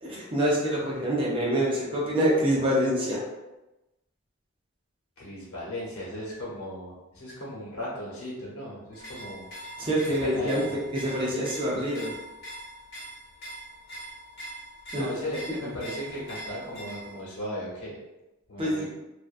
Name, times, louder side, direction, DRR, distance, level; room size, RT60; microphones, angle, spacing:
voice 1, 0.0-3.2 9.8-10.6 10.9-12.1 14.9-15.1 18.6-18.9, equal, 25° right, -5 dB, 0.6 m, -26 dB
voice 2, 5.2-9.5 10.2-10.8 14.9-18.0 18.5-18.9, equal, 75° left, -7 dB, 1.0 m, -36 dB
sound 1, 8.9-17.2, right 1 dB, 50° left, 0.8 m, -42 dB
2.5 x 2.2 x 2.5 m, 1.0 s
head